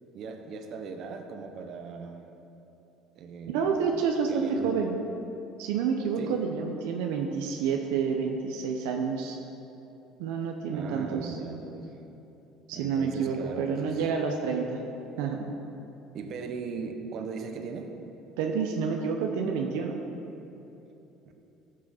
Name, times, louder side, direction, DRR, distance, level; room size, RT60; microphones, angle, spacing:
voice 1, 0.1-2.2 3.1-3.8 4.3-4.7 6.2-6.4 10.7-12.0 12.7-14.1 16.1-17.9, right 5 dB, 55° right, 5 dB, 1.0 m, -38 dB
voice 2, 3.5-5.0 5.6-9.4 10.2-11.4 12.7-14.8 15.2-15.5 18.4-20.0, right 6 dB, 80° right, 2 dB, 0.8 m, -29 dB
14.5 x 6.2 x 4.4 m, 3.0 s
supercardioid pair, 90°, 0 cm